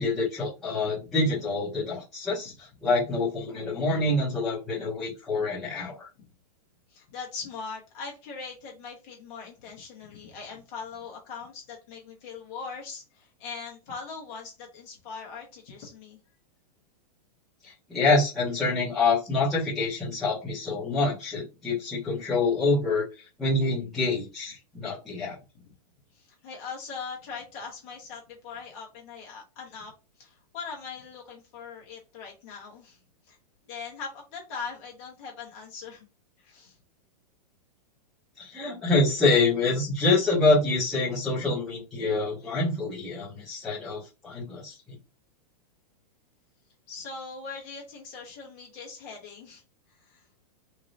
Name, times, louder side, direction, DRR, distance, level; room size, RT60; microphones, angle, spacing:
voice 1, 0.0-6.1 17.6-23.0 23.4-25.4 38.4-44.8, left 3 dB, ahead, -11 dB, 0.8 m, -26 dB
voice 2, 6.9-16.2 25.2-25.3 26.1-29.9 30.2-33.0 33.3-33.4 33.7-36.1 36.4-36.7 46.9-49.6 50.1-50.2, left 5 dB, 25° left, -1 dB, 0.9 m, -41 dB
3.1 x 2.7 x 2.6 m, 0.30 s
supercardioid pair, 180°, 21 cm